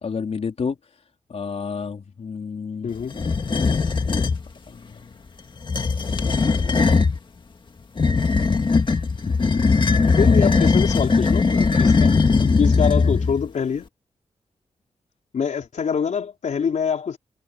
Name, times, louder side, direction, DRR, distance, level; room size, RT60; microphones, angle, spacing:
voice 1, 0.0-0.8 1.3-2.9 4.7-4.8, left 5 dB, 55° left, 3.7 m, -29 dB
voice 2, 2.8-3.1 10.2-13.9 15.3-17.2, left 6 dB, 75° left, 3.9 m, -25 dB
sound 1, 3.1-4.4 5.6-7.2 8.0-13.5, left 4 dB, 40° left, 1.9 m, -19 dB
wide cardioid pair, 145°, 12 cm